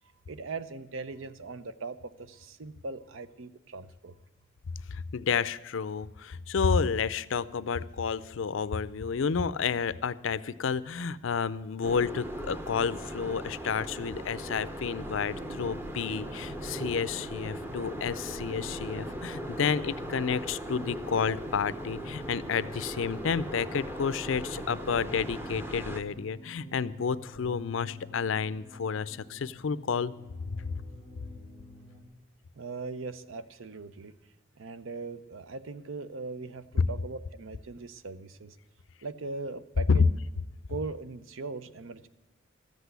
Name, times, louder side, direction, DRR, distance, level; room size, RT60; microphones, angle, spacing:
voice 1, 0.3-4.2 32.6-34.1 34.6-38.6 39.0-40.1 40.7-42.1, right 3 dB, 75° right, 13 dB, 0.7 m, -40 dB
voice 2, 4.9-30.1 30.7-30.8 36.8-36.9 39.9-40.0, left 5 dB, 70° left, 17 dB, 0.5 m, -30 dB
sound 1, 11.8-26.0, equal, 10° right, 0.7 m, -39 dB
sound 2, 15.1-32.0, left 1 dB, 50° right, 5.1 m, -49 dB
13.5 x 8.2 x 8.0 m, 1.1 s
head